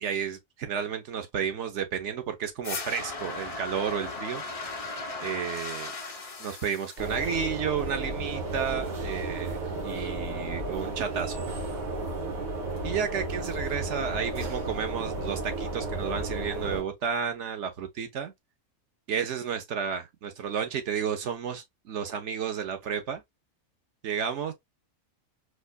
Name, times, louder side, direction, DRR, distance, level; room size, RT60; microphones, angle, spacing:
voice 1, 0.0-4.4 5.2-5.9 6.4-11.4 12.8-18.3 19.1-23.2 24.0-24.5, right 7 dB, 55° right, 1.0 m, -32 dB
sound 1, 2.6-7.6, left 3 dB, 55° left, 0.3 m, -37 dB
sound 2, 7.0-16.8, right 2 dB, 90° right, 2.0 m, -33 dB
4.3 x 2.5 x 2.2 m
omnidirectional pair, 1.6 m